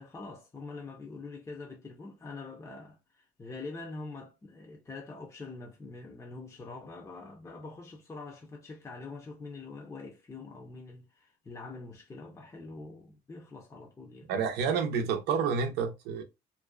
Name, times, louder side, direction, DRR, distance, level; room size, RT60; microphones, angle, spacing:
voice 1, 0.0-14.3, left 3 dB, 20° left, 0.6 m, -44 dB
voice 2, 14.3-16.2, right 6 dB, 85° right, 0.6 m, -29 dB
2.5 x 2.2 x 2.3 m
cardioid pair, 110°, 17 cm